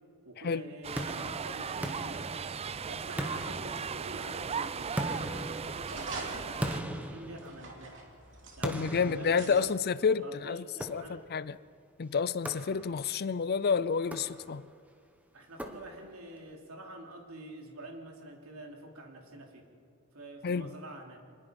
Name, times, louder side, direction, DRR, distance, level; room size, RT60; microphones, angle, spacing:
voice 1, 0.2-2.4 2.9-8.0 8.6-9.8 10.2-11.2 15.3-19.7 20.1-21.2, right 1 dB, 90° right, 3.3 m, -47 dB
sound 1, 0.8-6.8, right 6 dB, 30° right, 0.4 m, -37 dB
sound 2, 1.0-2.8 3.2-4.3 5.0-8.0 8.6-10.0 10.8-11.4 12.4-13.2 14.0-14.8 15.6-16.3, equal, 5° right, 1.5 m, -40 dB
sound 3, 5.8-9.8, right 2 dB, 60° right, 2.9 m, -47 dB
voice 2, 8.6-11.6 12.0-14.7 20.4-20.7, left 5 dB, 50° left, 0.5 m, -30 dB
26.0 x 20.0 x 5.3 m
head